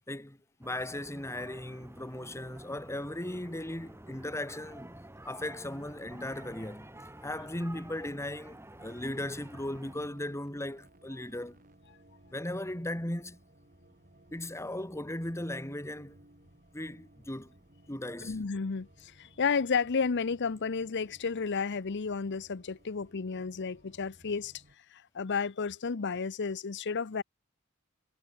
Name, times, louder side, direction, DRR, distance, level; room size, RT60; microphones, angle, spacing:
voice 1, 0.1-4.9 5.2-6.9 7.2-11.6 12.3-13.4 14.3-16.2 16.7-17.5 17.9-18.4, left 1 dB, 15° left, 2.5 m, -37 dB
sound 1, 0.6-10.0, right 1 dB, 10° right, 4.0 m, -50 dB
sound 2, 8.8-24.8, right 1 dB, 40° right, 4.9 m, -60 dB
voice 2, 18.2-24.5 24.9-27.2, left 5 dB, 55° left, 0.7 m, -32 dB
head